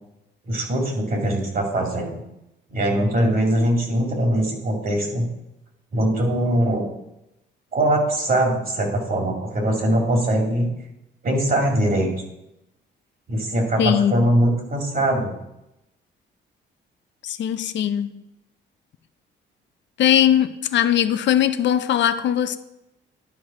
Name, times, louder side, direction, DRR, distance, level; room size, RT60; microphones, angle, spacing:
voice 1, 0.5-2.2 2.7-5.3 5.9-6.8 7.7-10.7 11.2-12.1 13.3-15.3, right 1 dB, 45° right, 2.5 m, -21 dB
voice 2, 13.8-14.4 17.2-18.2 20.0-22.6, left 10 dB, 65° left, 0.6 m, -20 dB
11.5 x 4.7 x 4.3 m
cardioid pair, 90°, 20 cm